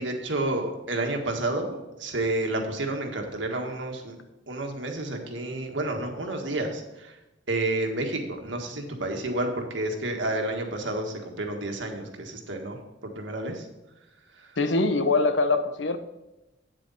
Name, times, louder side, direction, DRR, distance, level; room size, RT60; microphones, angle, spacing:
voice 1, 0.0-4.1 4.5-7.1 7.5-12.8 13.0-13.6, right 2 dB, 75° right, 3 dB, 1.7 m, -30 dB
voice 2, 14.6-16.0, left 3 dB, 75° left, 8 dB, 0.9 m, -23 dB
9.0 x 7.8 x 4.2 m, 0.99 s
head